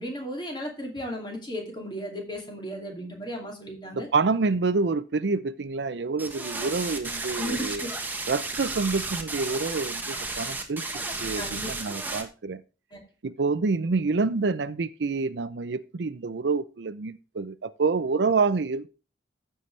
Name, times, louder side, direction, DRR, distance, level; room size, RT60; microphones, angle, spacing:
voice 1, 0.0-4.1 7.4-7.9 11.4-11.7 12.9-13.0, equal, 25° left, 2.5 m, -35 dB
voice 2, 3.9-7.9 8.3-12.6 13.2-18.9, right 4 dB, 70° right, 0.5 m, -27 dB
sound 1, 6.2-12.2, right 3 dB, 10° right, 1.2 m, -33 dB
14.5 x 5.7 x 3.3 m
head